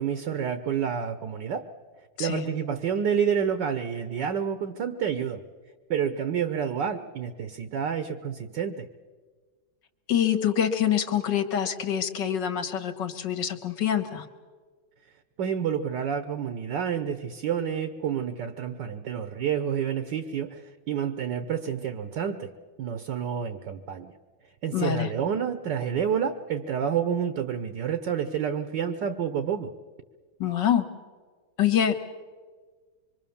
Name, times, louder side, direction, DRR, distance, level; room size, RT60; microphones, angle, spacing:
voice 1, 0.0-1.7 2.2-5.4 5.9-8.9 15.4-22.5 22.8-24.1 24.6-29.7, right 8 dB, 60° right, 10 dB, 1.4 m, -29 dB
voice 2, 10.1-14.3 24.7-25.1 30.4-30.9 31.6-32.1, left 9 dB, 55° left, 8 dB, 2.0 m, -25 dB
25.5 x 23.5 x 7.1 m, 1.5 s
omnidirectional pair, 2.3 m